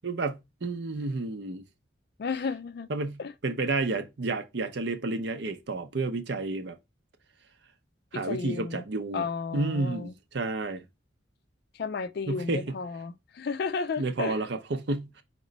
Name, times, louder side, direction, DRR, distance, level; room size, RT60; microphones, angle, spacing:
voice 1, 0.0-1.6 2.9-6.8 8.1-9.2 9.5-10.8 12.3-12.7 14.0-15.2, right 3 dB, 60° right, 0.6 m, -31 dB
voice 2, 2.2-2.9 3.2-3.3 8.1-8.8 9.1-10.1 11.7-14.5, left 4 dB, 50° left, 0.3 m, -33 dB
4.3 x 3.0 x 3.9 m
head